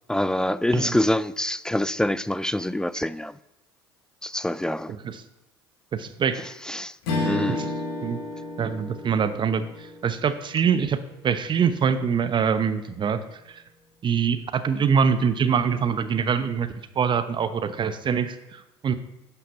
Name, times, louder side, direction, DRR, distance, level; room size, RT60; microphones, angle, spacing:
voice 1, 0.1-3.3 4.2-4.9 6.6-7.0 7.2-7.7, left 1 dB, 5° left, 0.4 m, -25 dB
voice 2, 5.9-6.4 7.5-7.7 8.0-8.2 8.6-11.0 11.2-13.6 14.0-16.7 17.0-18.9, right 7 dB, 35° right, 0.9 m, -24 dB
Strum, 7.0-11.7, left 2 dB, 70° left, 2.6 m, -32 dB
11.0 x 5.9 x 7.0 m
hypercardioid pair, 75°, 13 cm